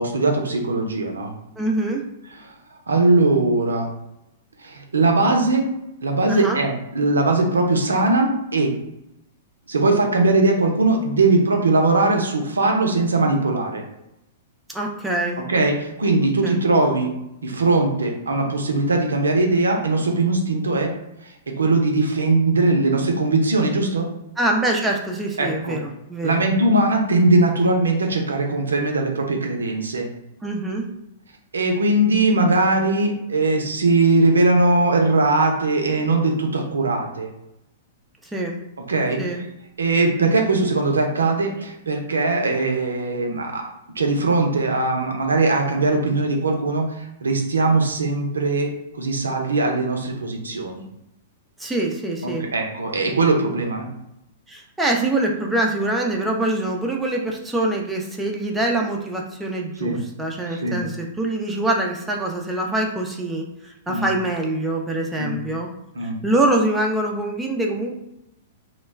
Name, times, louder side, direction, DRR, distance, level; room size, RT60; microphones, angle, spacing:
voice 1, 0.0-1.3 2.4-2.5 2.9-3.9 4.6-5.7 6.0-8.7 9.7-13.8 15.5-17.1 17.4-20.9 21.2-24.1 25.4-25.8 26.2-30.1 31.5-37.3 38.9-39.2 39.8-43.6 44.0-48.7 48.9-50.8 52.2-53.9 59.8-60.0 60.5-60.8 63.9-64.1 65.2-65.4 65.9-66.2, right 2 dB, 85° right, 2 dB, 0.5 m, -20 dB
voice 2, 1.6-2.0 6.3-6.6 14.7-15.4 16.4-16.6 24.4-26.4 30.4-30.8 38.3-38.6 39.2-39.4 51.6-52.5 54.5-65.7 66.0-67.9, right 2 dB, 5° right, -1 dB, 0.5 m, -24 dB
2.2 x 2.1 x 3.2 m, 0.87 s
hypercardioid pair, 115°, 0 cm